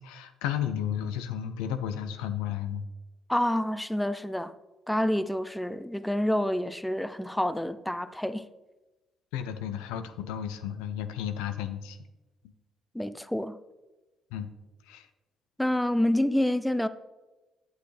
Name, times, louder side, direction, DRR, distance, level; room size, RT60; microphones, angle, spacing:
voice 1, 0.0-2.8 9.3-12.0 14.3-14.5 14.9-15.1, left 9 dB, 85° left, 0.6 m, -33 dB
voice 2, 3.3-4.5 4.9-8.5 12.9-13.6 15.6-16.9, left 1 dB, 5° left, 0.5 m, -28 dB
8.2 x 8.0 x 3.3 m
supercardioid pair, 60°, 0 cm